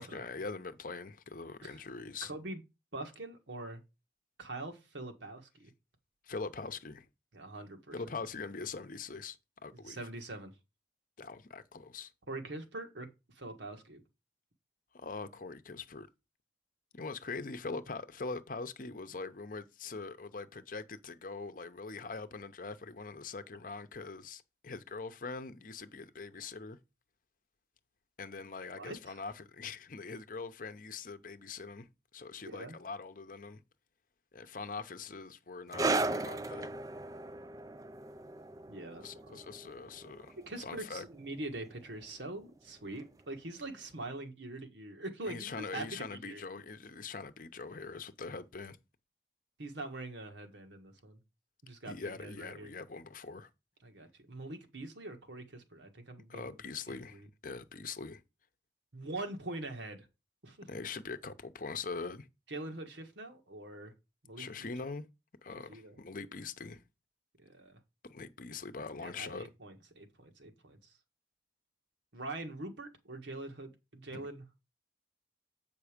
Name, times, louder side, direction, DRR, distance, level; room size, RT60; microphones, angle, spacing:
voice 1, 0.0-2.3 6.2-7.1 7.9-9.4 9.6-10.0 11.2-12.1 14.9-16.1 16.9-26.8 28.2-31.9 32.1-33.6 34.3-36.7 39.0-40.4 40.6-41.0 45.3-48.8 51.9-53.5 56.3-58.2 60.7-62.3 64.4-65.1 65.4-66.8 68.0-69.5 74.1-74.3, left 4 dB, 50° left, 0.7 m, -42 dB
voice 2, 2.2-2.6 2.9-3.8 4.4-5.7 7.3-8.0 9.7-10.5 12.3-13.1 13.3-14.0 28.7-29.2 32.4-32.8 38.7-39.4 40.4-46.4 49.6-51.2 51.6-52.7 53.8-56.6 56.9-57.3 58.9-60.1 60.4-60.7 62.5-63.9 64.2-64.7 65.7-66.0 67.4-67.8 69.0-70.8 72.1-74.4, right 2 dB, 85° right, 1.5 m, -44 dB
sound 1, 35.7-42.7 43.0-43.2 44.0-44.1, right 2 dB, 20° right, 0.4 m, -37 dB
8.3 x 5.3 x 5.1 m
head